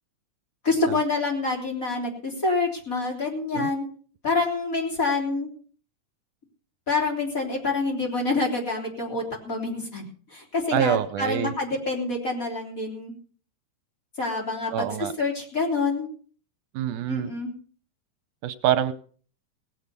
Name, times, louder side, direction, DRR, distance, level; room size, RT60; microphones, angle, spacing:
voice 1, 0.6-3.8 4.2-5.5 6.9-10.0 10.3-13.1 14.2-16.1 17.1-17.5, left 3 dB, 25° left, 0 dB, 3.5 m, -27 dB
voice 2, 10.7-11.5 14.7-15.1 16.7-17.3 18.4-18.9, right 10 dB, 80° right, 12 dB, 2.2 m, -25 dB
18.0 x 8.0 x 6.7 m, 0.44 s
omnidirectional pair, 3.6 m